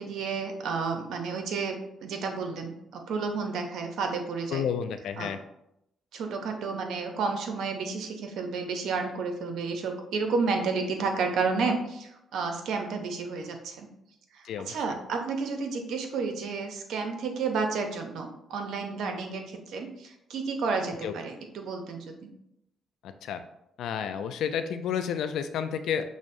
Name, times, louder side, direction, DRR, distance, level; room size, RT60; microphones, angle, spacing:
voice 1, 0.0-4.6 5.2-5.3 6.1-13.9 14.3-22.1, right 4 dB, 75° right, 4 dB, 0.6 m, -31 dB
voice 2, 4.5-5.4 14.4-14.7 21.0-21.2 23.0-23.4 23.8-26.0, left 8 dB, 80° left, 9 dB, 0.3 m, -31 dB
6.0 x 2.0 x 2.6 m, 0.80 s
cardioid pair, 90°, 0 cm